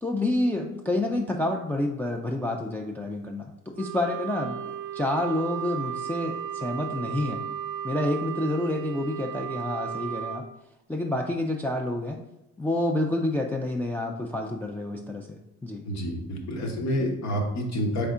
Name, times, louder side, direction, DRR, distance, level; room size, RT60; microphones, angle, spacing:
voice 1, 0.0-4.6 4.9-7.4 7.8-10.5 10.9-12.2 12.6-15.8, left 1 dB, 5° left, 0 dB, 0.3 m, -28 dB
Wind instrument woodwind instrument, 3.8-10.4, right 9 dB, 80° right, 0.6 m, -35 dB
voice 2, 15.8-18.1, equal, 65° left, 2 dB, 1.0 m, -28 dB
4.2 x 3.4 x 3.6 m, 0.89 s
cardioid pair, 90°, 30 cm